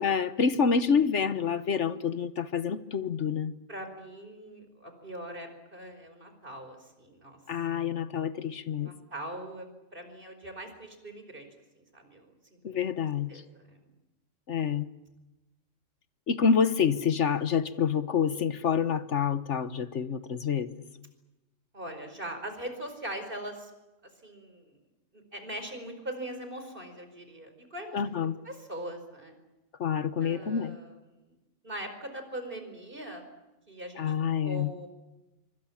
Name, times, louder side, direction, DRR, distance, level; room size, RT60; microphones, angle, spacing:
voice 1, 0.0-3.5 7.5-8.9 12.6-13.3 14.5-14.9 16.3-20.8 27.9-28.4 29.8-30.7 34.0-34.7, left 6 dB, 70° left, 12 dB, 1.4 m, -27 dB
voice 2, 3.7-7.4 8.8-11.5 11.9-12.8 13.3-13.8 21.7-23.7 24.2-24.8 25.3-29.3 30.2-31.0 31.6-33.2 33.7-34.0 34.4-34.9, right 1 dB, 45° right, 7 dB, 5.1 m, -41 dB
25.5 x 24.5 x 7.3 m, 1.0 s
omnidirectional pair, 1.3 m